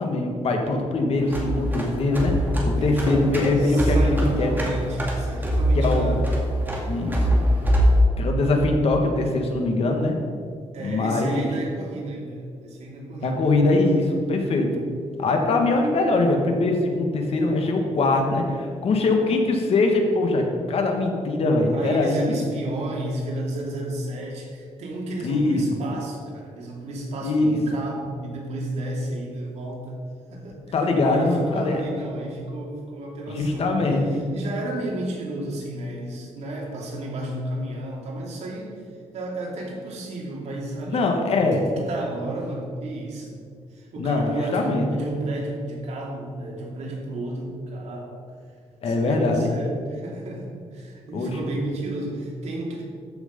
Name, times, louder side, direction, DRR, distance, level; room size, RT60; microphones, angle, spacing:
voice 1, 0.0-2.3 2.6-4.6 5.7-6.2 6.9-7.4 8.2-10.2 10.8-11.5 13.2-14.7 15.2-22.4 25.2-25.6 27.2-27.6 30.7-31.8 33.3-34.2 40.9-41.6 44.0-44.8 48.8-49.5 51.1-51.3, left 2 dB, 55° left, 3 dB, 1.6 m, -22 dB
sound 1, 1.2-8.0, equal, 15° right, 2.2 m, -23 dB
voice 2, 2.8-6.3 10.7-13.4 17.3-17.7 21.7-30.0 30.3-33.8 34.1-38.9 39.1-43.4 43.7-48.2 48.8-52.8, right 1 dB, 70° right, -1 dB, 2.7 m, -32 dB
13.5 x 6.3 x 5.3 m, 2.2 s
cardioid pair, 135°, 12 cm